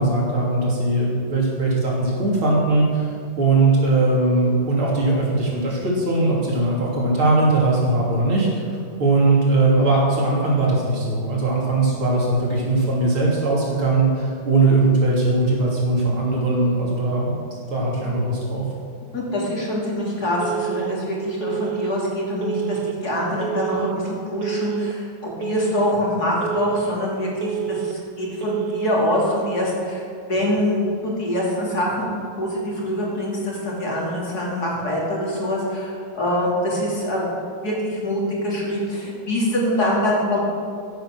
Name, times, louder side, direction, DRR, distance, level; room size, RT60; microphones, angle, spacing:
voice 1, 0.0-3.1 3.4-8.7 9.0-17.4 17.7-18.6, right 2 dB, 70° right, -4 dB, 3.9 m, -20 dB
voice 2, 19.1-30.0 30.3-32.1 32.4-37.3 37.6-40.4, left 1 dB, 45° left, -4 dB, 3.1 m, -24 dB
Telephone, 20.4-20.9 21.4-21.9 22.4-22.9 23.4-23.9 24.4-24.9 25.4-25.9 26.4-26.9 27.4-27.9 28.4-28.9, right 12 dB, 85° right, 1.6 m, -28 dB
15.5 x 8.5 x 6.4 m, 2.3 s
omnidirectional pair, 2.4 m